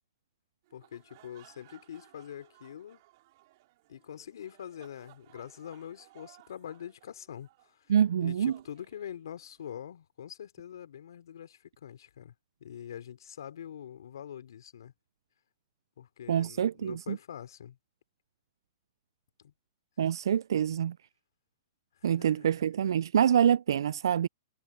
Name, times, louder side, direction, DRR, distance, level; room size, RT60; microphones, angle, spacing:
sound 1, 0.6-9.7, right 18 dB, 55° right, 5.4 m, -60 dB
voice 1, 0.7-3.0 3.9-7.9 8.2-12.3 12.6-14.9 16.0-17.8 19.4-19.5 21.9-22.6, left 9 dB, 75° left, 3.6 m, -44 dB
voice 2, 7.9-8.5 16.3-17.2 20.0-21.0 22.0-24.3, right 9 dB, 75° right, 0.3 m, -26 dB
hypercardioid pair, 120°, 2 cm